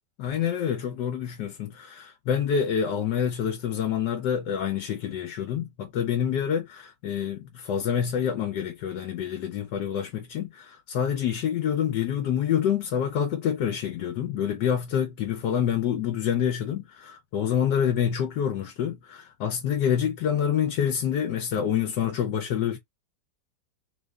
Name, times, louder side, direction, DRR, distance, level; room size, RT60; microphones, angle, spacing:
voice 1, 0.2-22.8, left 8 dB, 80° left, 1.3 m, -27 dB
3.4 x 2.1 x 3.5 m
omnidirectional pair, 1.8 m